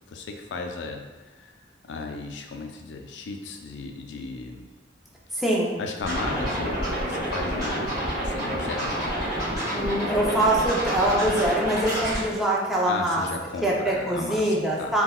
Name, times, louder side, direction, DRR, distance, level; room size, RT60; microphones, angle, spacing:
voice 1, 0.1-1.5 1.8-4.6 5.8-9.0 12.9-14.9, left 3 dB, 90° left, 4 dB, 0.4 m, -35 dB
voice 2, 5.3-5.8 9.7-13.3 13.6-15.0, right 1 dB, ahead, -4 dB, 0.4 m, -24 dB
Scratching (performance technique), 6.0-12.2, equal, 20° right, 1.2 m, -28 dB
3.6 x 2.2 x 2.2 m, 1.2 s
head